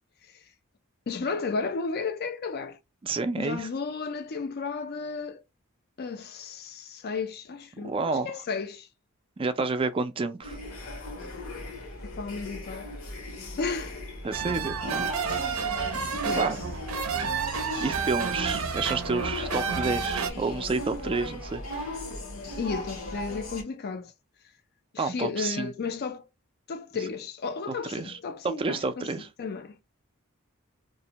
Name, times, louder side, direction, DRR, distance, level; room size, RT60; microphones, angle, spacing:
voice 1, 1.1-2.8 3.4-5.4 6.0-8.9 12.0-12.9 13.6-14.0 15.9-16.5 22.6-24.1 24.9-26.2 26.7-29.1 29.4-29.8, left 4 dB, 50° left, 0.4 m, -33 dB
voice 2, 3.0-3.7 7.8-8.4 9.4-10.6 14.2-16.0 16.4-16.6 17.8-22.0 25.0-25.7 27.7-28.2 28.4-29.3, right 3 dB, 25° right, 0.3 m, -30 dB
sound 1, 10.4-23.6, left 1 dB, 70° left, 0.8 m, -38 dB
sound 2, 14.3-20.3, right 6 dB, 80° right, 0.5 m, -30 dB
2.5 x 2.1 x 2.7 m
head